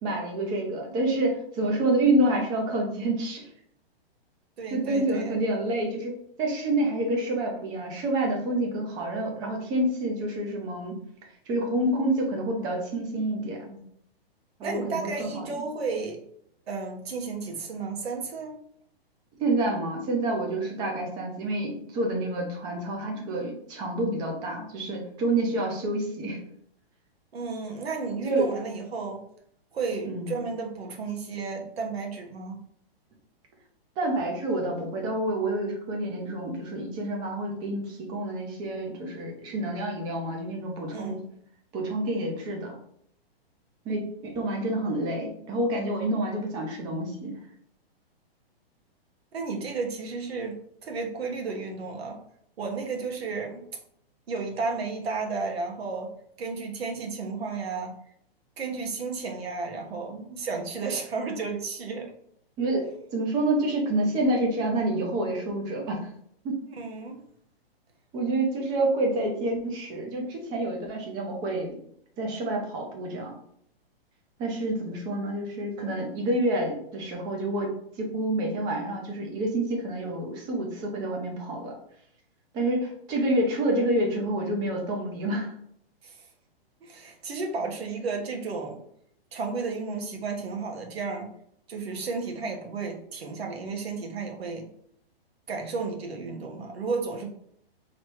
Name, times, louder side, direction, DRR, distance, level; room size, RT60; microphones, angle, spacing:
voice 1, 0.0-3.4 4.7-11.0 11.5-13.8 14.6-15.6 19.4-26.4 28.2-28.5 30.0-30.4 34.0-41.2 41.7-42.7 43.9-47.3 62.6-66.0 66.4-66.6 68.1-71.8 72.2-73.4 74.4-81.7 82.5-85.5, right 1 dB, 15° right, 1 dB, 0.6 m, -28 dB
voice 2, 4.6-5.4 14.6-16.2 16.7-18.6 27.3-29.2 29.7-32.6 40.9-41.2 49.3-52.2 52.6-53.6 54.3-56.1 56.4-57.9 58.6-62.1 66.7-67.2 86.0-86.3 86.8-88.8 89.3-91.3 91.7-94.6 95.5-97.3, right 4 dB, 80° right, 2 dB, 1.3 m, -33 dB
3.3 x 3.1 x 4.4 m, 0.69 s
hypercardioid pair, 165°, 31 cm